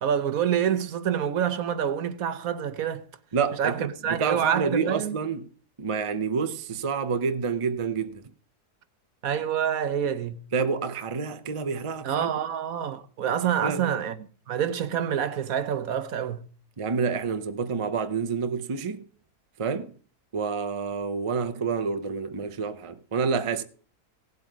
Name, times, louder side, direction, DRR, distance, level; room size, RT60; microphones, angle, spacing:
voice 1, 0.0-3.0 3.6-5.1 9.2-10.4 12.0-14.2 14.5-16.4, right 9 dB, 65° right, 1.2 m, -27 dB
voice 2, 3.3-5.5 5.8-8.2 10.5-12.3 13.6-14.0 16.8-19.0 19.6-19.9 20.3-23.6, right 5 dB, 35° right, 0.5 m, -28 dB
16.5 x 8.2 x 4.8 m
omnidirectional pair, 1.7 m